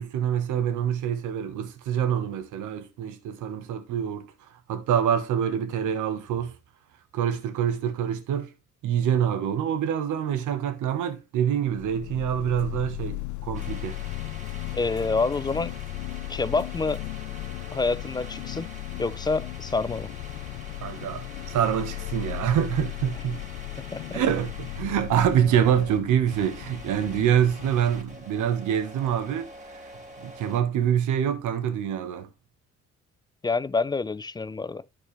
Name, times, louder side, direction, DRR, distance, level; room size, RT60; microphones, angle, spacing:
voice 1, 0.0-4.3 4.7-6.6 7.1-8.5 8.8-14.0 20.8-23.4 24.1-29.8 30.2-32.3, right 9 dB, 85° right, 1.2 m, -26 dB
sound 1, 11.7-28.3, left 20 dB, 75° left, 0.5 m, -36 dB
sound 2, 13.5-30.6, right 1 dB, 25° right, 2.9 m, -45 dB
voice 2, 14.7-15.7 16.3-17.0 17.7-18.7 19.0-20.1 23.9-24.2 33.4-34.8, left 3 dB, 15° left, 0.3 m, -27 dB
11.5 x 4.5 x 3.3 m
cardioid pair, 90°, 30 cm